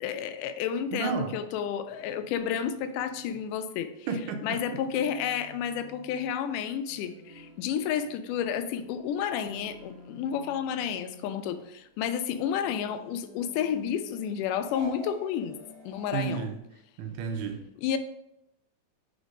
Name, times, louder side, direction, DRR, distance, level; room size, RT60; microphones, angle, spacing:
voice 1, 0.0-3.9 4.4-15.6 15.9-16.5 17.8-18.0, left 8 dB, 90° left, 9 dB, 2.1 m, -31 dB
voice 2, 0.9-1.3 4.1-4.6 16.1-16.6 17.0-17.6, right 5 dB, 80° right, 5 dB, 2.2 m, -31 dB
Human voice, 1.9-3.4 4.2-6.2 6.9-8.8 9.5-11.6 12.6-14.2 15.4-16.6, left 1 dB, 50° left, 1.5 m, -53 dB
sound 1, 7.3-11.1 11.5-13.1 14.6-16.2, right 4 dB, 60° right, 2.5 m, -50 dB
5.1 x 4.4 x 5.1 m, 0.83 s
omnidirectional pair, 3.6 m